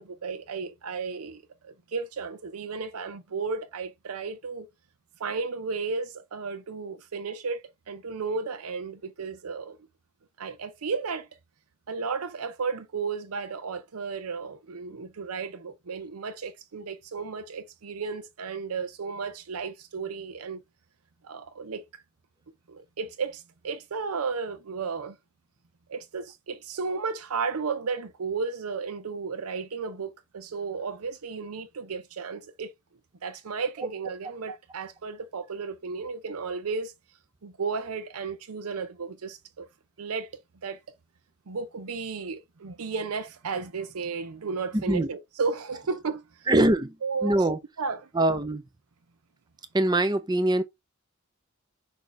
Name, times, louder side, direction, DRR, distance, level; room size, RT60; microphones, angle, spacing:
voice 1, 0.0-4.7 5.2-9.8 10.4-11.3 11.9-20.6 21.2-21.8 22.7-25.2 25.9-32.7 33.2-36.9 37.4-39.7 40.0-40.3 40.6-40.8 41.5-46.2 47.0-47.5 47.8-48.1, right 5 dB, 90° right, 0.6 m, -33 dB
voice 2, 44.7-45.1 46.5-46.9 47.2-47.6 48.1-48.6 49.7-50.6, right 1 dB, 20° right, 0.5 m, -23 dB
6.2 x 2.7 x 3.1 m
head